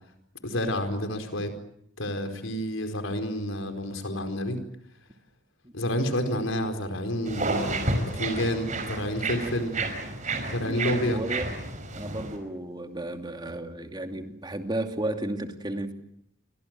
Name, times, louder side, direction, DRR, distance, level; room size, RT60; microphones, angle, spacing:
voice 1, 0.4-1.5 2.0-4.6 5.7-9.8 10.4-11.2, left 1 dB, 75° left, 4.8 m, -29 dB
sound 1, 7.2-12.4, right 2 dB, 35° right, 5.4 m, -31 dB
voice 2, 10.7-11.5 11.9-15.9, right 1 dB, 20° right, 2.7 m, -33 dB
29.5 x 25.0 x 7.7 m
head